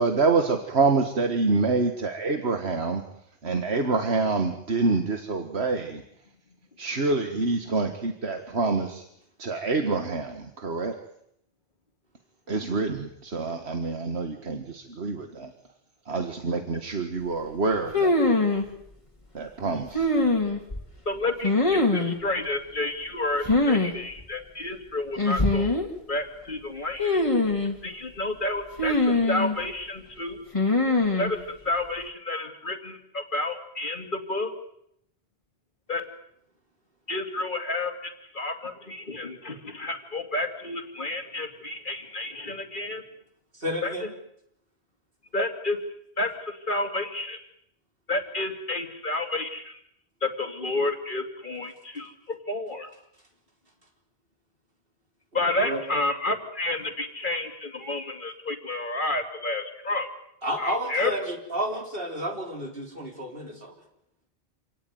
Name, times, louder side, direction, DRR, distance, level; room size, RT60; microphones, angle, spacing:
voice 1, 0.0-3.0 3.4-6.0 6.8-9.0 9.4-10.9 12.5-15.5 16.1-18.1 19.4-20.1, right 3 dB, 85° right, 6 dB, 1.9 m, -26 dB
sound 1, 17.9-18.6 19.9-20.8 21.4-22.2 23.4-23.9 24.2-24.3 25.2-25.9 27.0-27.8 28.8-29.6 30.5-31.3, left 2 dB, 30° left, 2.9 m, -22 dB
voice 2, 21.1-25.8 26.1-27.2 27.8-30.4 31.2-34.5 35.9-36.0 37.1-43.0 43.8-43.9 45.3-45.8 46.2-47.4 48.1-49.8 50.2-52.9 55.3-60.1 60.6-61.1, left 2 dB, 50° left, 5 dB, 2.8 m, -30 dB
voice 3, 43.6-44.1 55.6-55.8 60.4-63.7, equal, 60° right, 3 dB, 4.1 m, -31 dB
27.5 x 18.5 x 9.4 m, 0.76 s
omnidirectional pair, 1.1 m